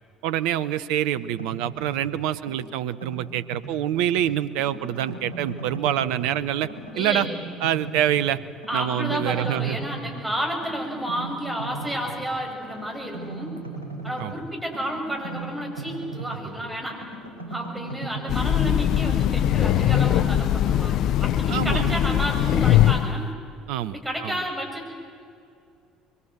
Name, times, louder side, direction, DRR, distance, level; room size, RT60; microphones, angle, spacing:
voice 1, 0.2-6.7 7.0-7.3 7.6-8.4 8.7-9.8 14.2-14.4 21.5-22.0 23.7-24.4, right 11 dB, 60° right, 14 dB, 0.8 m, -26 dB
sound 1, 1.1-2.1 2.5-4.2 4.6-6.3 6.6-8.4 8.6-10.2 10.6-12.2 12.6-16.6 16.9-20.2, right 3 dB, 80° right, 5.4 m, -38 dB
voice 2, 6.9-7.3 8.7-13.5 14.0-17.0 17.5-23.3 23.9-24.9, equal, 10° right, 1 dB, 6.5 m, -31 dB
Train, 18.3-23.2, left 11 dB, 50° left, 0.6 m, -21 dB
25.0 x 23.0 x 7.9 m, 2.4 s
figure-of-eight pair, 60°, 0 cm